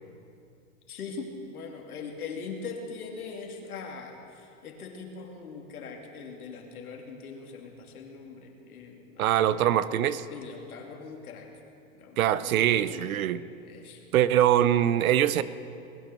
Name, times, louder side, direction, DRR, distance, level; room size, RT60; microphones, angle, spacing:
voice 1, 0.9-9.6 10.3-11.5 12.0-13.3 13.6-14.3, left 5 dB, 90° left, 1 dB, 2.7 m, -41 dB
voice 2, 9.2-10.3 12.2-13.4 14.1-15.4, right 11 dB, 75° right, 16 dB, 0.8 m, -23 dB
20.5 x 9.2 x 6.8 m, 2.6 s
supercardioid pair, 165°, 43 cm